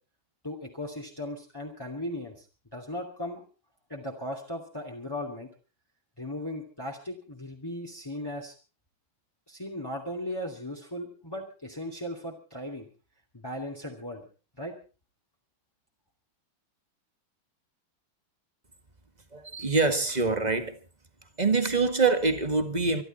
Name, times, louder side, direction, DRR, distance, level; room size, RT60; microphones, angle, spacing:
voice 1, 0.4-2.4 2.7-3.4 3.9-5.5 6.2-8.5 9.5-12.9 13.4-14.3 14.6-14.7, left 1 dB, 10° left, 2.7 m, -37 dB
voice 2, 19.3-20.8 21.4-23.0, right 4 dB, 20° right, 1.6 m, -25 dB
25.0 x 12.0 x 4.3 m
omnidirectional pair, 2.3 m